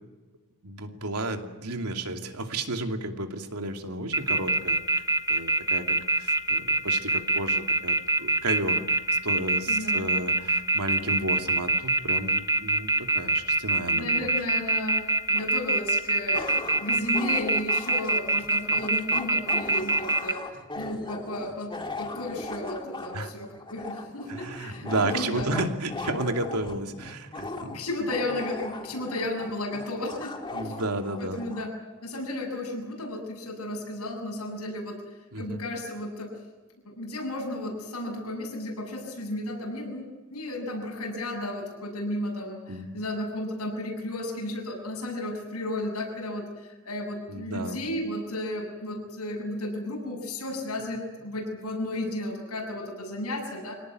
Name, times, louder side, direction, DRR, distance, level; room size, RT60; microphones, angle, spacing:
voice 1, 0.6-5.0 5.3-14.3 23.1-23.3 24.3-27.8 30.5-31.4 35.3-35.6 42.7-43.0 47.3-47.8, right 2 dB, 85° right, 4 dB, 2.7 m, -32 dB
sound 1, 4.1-20.3, right 2 dB, 15° right, 1.3 m, -24 dB
voice 2, 9.7-10.0 13.9-15.0 15.3-25.6 27.7-30.3 30.6-30.8 31.2-31.7 32.0-36.3 36.8-53.7, left 1 dB, 75° left, -1 dB, 7.5 m, -34 dB
sound 2, 15.4-15.5 16.3-31.7, left 2 dB, 20° left, 2.1 m, -39 dB
24.5 x 18.5 x 9.5 m, 1.2 s
head